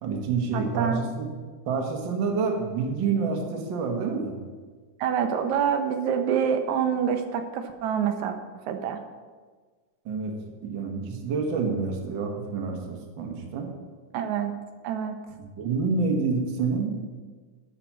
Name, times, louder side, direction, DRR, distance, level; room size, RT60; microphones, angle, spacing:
voice 1, 0.0-1.4 1.7-4.4 10.0-13.8 15.4-17.0, right 5 dB, 50° right, 3 dB, 1.6 m, -28 dB
voice 2, 0.5-1.0 5.0-8.4 8.7-9.0 14.1-14.5 14.8-15.2, right 7 dB, 75° right, 7 dB, 2.1 m, -26 dB
13.0 x 5.8 x 6.0 m, 1.5 s
omnidirectional pair, 3.4 m